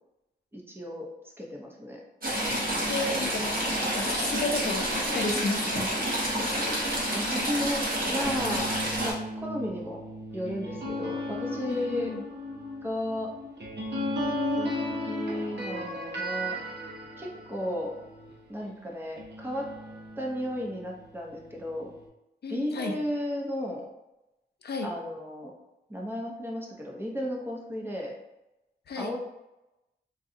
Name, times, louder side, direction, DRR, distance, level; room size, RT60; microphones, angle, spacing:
voice 1, 0.5-2.0 2.7-2.9 7.1-7.8 8.1-8.7 9.0-10.0 10.3-12.2 12.8-13.3 14.6-14.7 15.1-16.6 17.2-17.9 18.5-19.7 20.2-21.9 22.5-23.8 24.8-25.5 25.9-28.1 29.0-29.2, left 1 dB, 10° right, -1 dB, 0.7 m, -34 dB
Stream / Trickle dribble, 2.2-9.1, right 1 dB, 55° right, 1.0 m, -29 dB
voice 2, 2.5-3.5 3.9-6.2 11.7-12.2 22.4-22.9 24.6-24.9 28.9-29.1, left 3 dB, 65° left, 4 dB, 0.5 m, -33 dB
sound 1, 6.1-18.7 19.1-22.1, left 1 dB, 80° right, 0.7 m, -36 dB
3.8 x 2.3 x 2.6 m, 0.95 s
wide cardioid pair, 95°, 18 cm